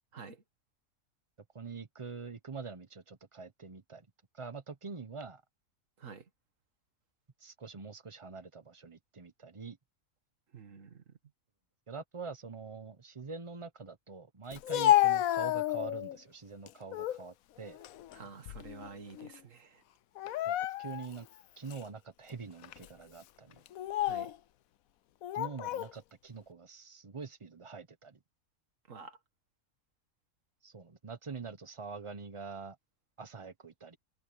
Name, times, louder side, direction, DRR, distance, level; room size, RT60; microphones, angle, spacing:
voice 1, 0.1-0.4 6.0-6.2 10.5-11.0 18.1-19.8 24.0-24.3 28.9-29.2, right 5 dB, 65° right, 2.0 m, -49 dB
voice 2, 1.5-4.1 4.3-5.4 7.4-9.8 11.9-17.8 20.4-21.3 21.6-23.6 25.3-28.2 30.6-32.8 33.2-34.0, right 5 dB, 25° right, 0.9 m, -45 dB
Speech, 14.5-16.2 16.7-17.2 17.7-18.9 19.2-19.4 20.2-21.1 21.7-21.8 22.6-22.9 23.7-24.4 25.2-25.9, left 13 dB, 80° left, 1.1 m, -30 dB
omnidirectional pair, 1.5 m